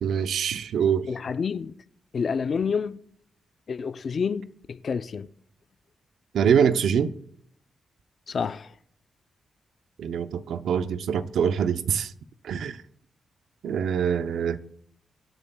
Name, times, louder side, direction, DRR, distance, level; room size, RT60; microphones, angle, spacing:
voice 1, 0.0-1.1 6.3-7.2 10.0-12.1 12.4-12.8 13.6-14.6, right 7 dB, 90° right, 0.6 m, -24 dB
voice 2, 1.1-1.7 2.1-3.0 3.7-5.3 8.3-8.7, left 6 dB, 50° left, 0.5 m, -28 dB
24.0 x 8.9 x 2.3 m
wide cardioid pair, 120°, 0 cm